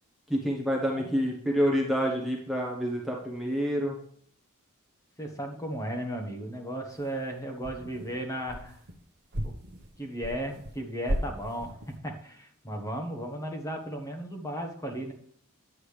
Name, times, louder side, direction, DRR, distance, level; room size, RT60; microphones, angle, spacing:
voice 1, 0.3-4.0, equal, ahead, -2 dB, 1.1 m, -28 dB
voice 2, 0.9-1.2 5.2-8.8 9.4-9.5 10.0-15.1, right 1 dB, 15° left, 2 dB, 1.3 m, -35 dB
sound 1, 6.9-7.3 7.6-9.0 9.3-10.8 11.1-12.0, equal, 50° right, 1.0 m, -35 dB
9.9 x 7.8 x 3.4 m, 0.62 s
head